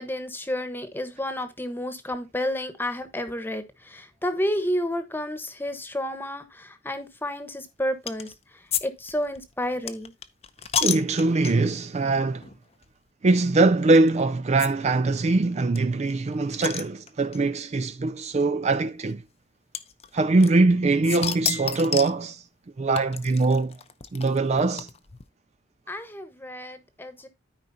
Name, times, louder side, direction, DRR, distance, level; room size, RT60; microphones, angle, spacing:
voice 1, 0.0-8.3 8.8-10.1 25.9-27.3, left 1 dB, 10° left, 1.1 m, -31 dB
sound 1, 8.1-8.3 8.7-8.8 9.1-11.8 12.4-12.6 12.8-12.9 13.9-14.1 14.6-14.7 15.0-15.1 15.2-15.3 15.7-17.4 18.3-18.4 19.7-20.7 21.0-22.2 23.0-25.2, left 8 dB, 35° left, 0.7 m, -31 dB
voice 2, 10.8-12.5 13.2-19.2 20.1-22.4 22.8-23.8 24.1-24.9, right 3 dB, 35° right, 0.4 m, -22 dB
13.0 x 5.0 x 2.7 m
head